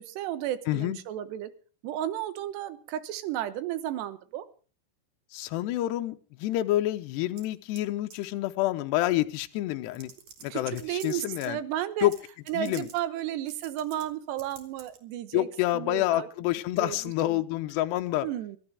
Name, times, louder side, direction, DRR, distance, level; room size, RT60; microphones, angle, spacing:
voice 1, 0.0-1.5 1.8-4.4 10.5-12.1 12.5-15.5 15.7-16.3 16.8-17.4 18.2-18.6, right 12 dB, 70° right, 13 dB, 3.1 m, -33 dB
voice 2, 0.7-1.0 5.3-10.1 10.4-11.6 12.0-12.1 12.5-12.9 15.3-18.3, left 15 dB, 75° left, 7 dB, 2.8 m, -28 dB
sound 1, 7.4-7.8 8.1-8.4 9.3-9.4 9.9-11.5 12.1-12.2 12.5-13.0 13.5-14.1 14.4-15.0, right 6 dB, 45° right, 2.6 m, -49 dB
24.0 x 12.5 x 3.5 m, 0.38 s
omnidirectional pair, 5.4 m